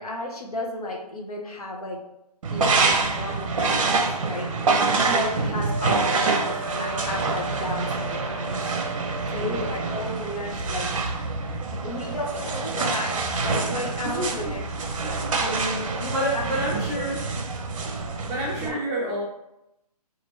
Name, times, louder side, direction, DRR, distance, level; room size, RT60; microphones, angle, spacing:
voice 1, 0.0-2.0 2.5-8.6 9.3-10.9 11.8-14.6 15.1-16.5 17.0-17.1 18.6-18.8, left 1 dB, 65° left, 0 dB, 1.0 m, -33 dB
sound 1, 2.4-18.7, right 3 dB, 55° right, 0.6 m, -26 dB
voice 2, 5.4-5.7 9.4-9.7 14.0-14.5 15.0-15.4 16.1-17.3 18.3-19.2, right 1 dB, 15° right, -5 dB, 0.6 m, -29 dB
Wind instrument woodwind instrument, 5.6-9.9, right 1 dB, 35° left, 0.4 m, -36 dB
3.9 x 2.6 x 3.1 m, 0.86 s
figure-of-eight pair, 145°, 20 cm